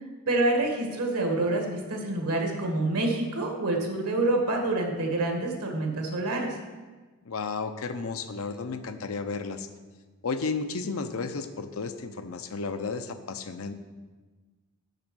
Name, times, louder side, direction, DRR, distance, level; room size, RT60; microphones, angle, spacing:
voice 1, 0.3-6.5, right 2 dB, 90° right, 2 dB, 1.6 m, -27 dB
voice 2, 7.2-9.7 10.2-13.7, left 4 dB, 65° left, 9 dB, 0.6 m, -33 dB
6.7 x 6.0 x 6.2 m, 1.3 s
head